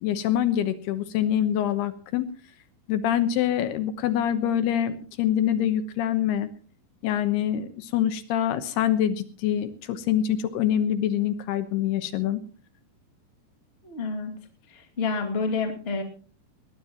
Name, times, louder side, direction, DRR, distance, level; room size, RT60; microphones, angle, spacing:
voice 1, 0.0-2.3 2.9-6.5 7.0-12.4, left 10 dB, 75° left, 11 dB, 3.0 m, -25 dB
voice 2, 13.8-14.3 14.7-16.0, left 4 dB, 20° left, 2 dB, 1.5 m, -29 dB
20.0 x 19.0 x 3.0 m, 0.39 s
omnidirectional pair, 4.9 m